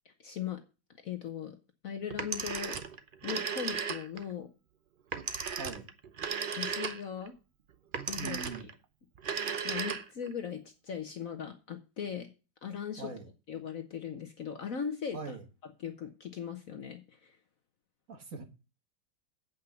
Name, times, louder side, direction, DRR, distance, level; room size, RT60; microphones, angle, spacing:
voice 1, 0.0-0.6 1.0-1.6 1.8-2.8 3.2-4.5 6.5-7.3 8.1-8.5 9.6-12.3 12.6-13.1 13.5-15.2 15.8-17.4, left 8 dB, 55° left, 7 dB, 1.1 m, -39 dB
Telephone, 2.1-4.3 5.1-7.3 7.9-8.7 9.2-10.3, right 6 dB, 70° right, 0.5 m, -35 dB
voice 2, 8.2-8.7 13.0-13.3 15.1-15.4 18.1-18.4, right 4 dB, 45° right, 6 dB, 1.5 m, -41 dB
8.3 x 5.5 x 6.8 m, 0.31 s
omnidirectional pair, 2.1 m